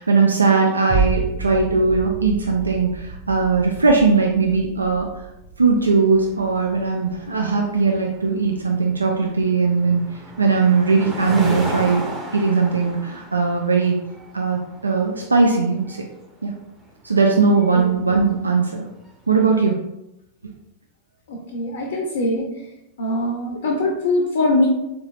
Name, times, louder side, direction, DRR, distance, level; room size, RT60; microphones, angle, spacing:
voice 1, 0.0-5.1 5.6-10.0 10.4-12.0 12.3-14.0 14.3-16.0 16.4-16.5 17.0-18.9 19.3-19.8, right 4 dB, 80° right, 1 dB, 0.3 m, -19 dB
sound 1, 0.9-9.4 9.9-10.0, right 4 dB, 50° right, 1.5 m, -31 dB
sound 2, 5.7-19.2, right 1 dB, 10° right, 0.8 m, -36 dB
voice 2, 17.7-18.1 21.3-22.5 23.0-24.7, left 2 dB, 60° left, 1 dB, 0.5 m, -22 dB
3.9 x 3.1 x 2.3 m, 0.89 s
figure-of-eight pair, 90°, 0 cm